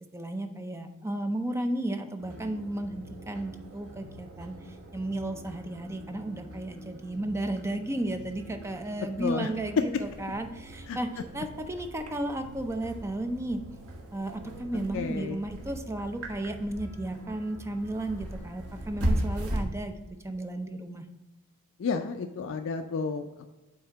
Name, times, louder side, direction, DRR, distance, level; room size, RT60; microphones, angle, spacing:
voice 1, 0.1-13.6 14.1-19.9 20.2-21.0, right 1 dB, 10° right, 6 dB, 0.5 m, -34 dB
sound 1, 2.2-19.6, right 1 dB, 75° right, 1.2 m, -39 dB
voice 2, 9.2-9.5 9.8-10.0 10.9-11.0 14.9-15.4 21.8-23.5, left 5 dB, 60° left, 7 dB, 0.4 m, -30 dB
7.8 x 2.8 x 5.7 m, 1.1 s
head